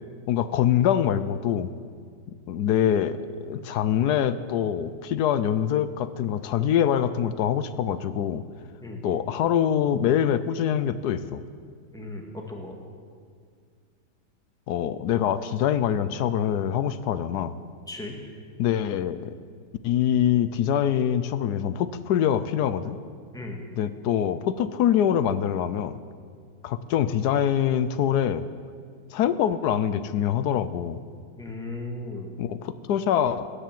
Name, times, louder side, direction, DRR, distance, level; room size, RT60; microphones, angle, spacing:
voice 1, 0.3-1.7 2.5-8.4 9.0-11.4 14.7-17.5 18.6-19.4 19.8-23.0 23.8-25.9 26.6-28.4 29.1-31.0 32.4-33.5, left 9 dB, 75° left, 14 dB, 1.1 m, -24 dB
voice 2, 11.9-12.8 17.9-18.2 23.3-23.6 31.4-32.3, left 2 dB, ahead, 1 dB, 1.7 m, -36 dB
17.5 x 10.0 x 7.5 m, 2.1 s
omnidirectional pair, 1.8 m